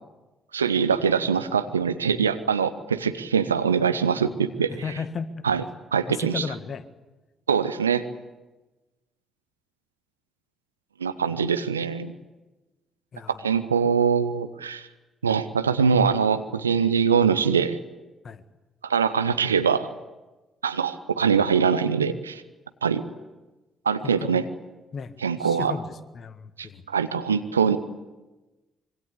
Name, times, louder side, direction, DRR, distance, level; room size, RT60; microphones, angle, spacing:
voice 1, 0.5-4.9 5.4-5.6 5.9-6.5 7.5-8.0 11.0-12.1 13.3-14.8 15.2-17.8 18.8-19.9 20.6-22.4 22.8-23.0 23.9-24.4 25.2-25.8 26.6-27.8, right 6 dB, 80° right, 12 dB, 0.8 m, -23 dB
voice 2, 4.8-5.3 6.1-6.8 13.1-13.4 18.2-18.4 24.0-24.5 24.9-25.1 25.4-25.9 26.1-26.8, left 6 dB, 45° left, 12 dB, 1.7 m, -34 dB
25.5 x 23.5 x 8.4 m, 1.1 s
figure-of-eight pair, 40°, 0 cm